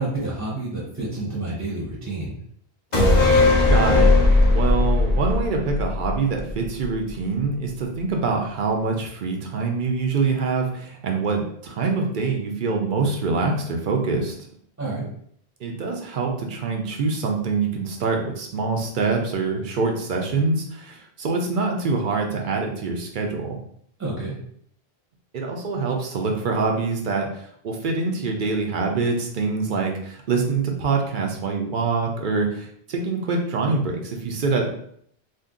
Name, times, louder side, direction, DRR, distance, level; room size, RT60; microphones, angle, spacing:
voice 1, 0.0-2.3 14.8-15.0 24.0-24.3, right 2 dB, 15° right, -5 dB, 0.7 m, -29 dB
sound 1, 2.9-6.5 6.8-6.9, left 2 dB, 45° left, 0.8 m, -17 dB
voice 2, 3.7-4.2 4.5-14.3 15.6-23.6 25.3-34.7, right 4 dB, 60° right, 1 dB, 0.6 m, -25 dB
2.6 x 2.2 x 3.6 m, 0.66 s
omnidirectional pair, 1.1 m